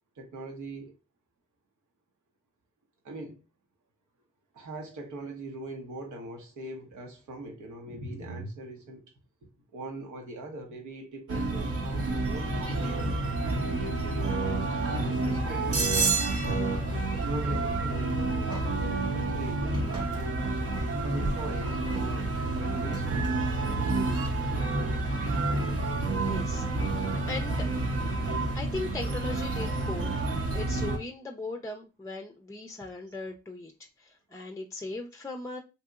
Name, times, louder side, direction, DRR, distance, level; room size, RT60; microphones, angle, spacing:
voice 1, 0.2-0.9 3.0-3.4 4.5-9.1 9.4-13.0 13.6-16.0 17.2-18.2 18.5-20.4 21.0-22.2 22.5-23.3, right 1 dB, 85° right, 0.9 m, -41 dB
sound 1, 11.3-31.0, right 2 dB, 55° right, 0.7 m, -29 dB
sound 2, 18.3-19.0 19.6-20.9 21.2-21.3 21.7-22.9, equal, 15° right, 0.9 m, -46 dB
voice 2, 26.1-26.7 27.3-27.7 28.5-30.1 30.5-33.7 34.0-35.6, left 2 dB, 10° left, 0.5 m, -38 dB
2.8 x 2.7 x 2.3 m
cardioid pair, 50°, 29 cm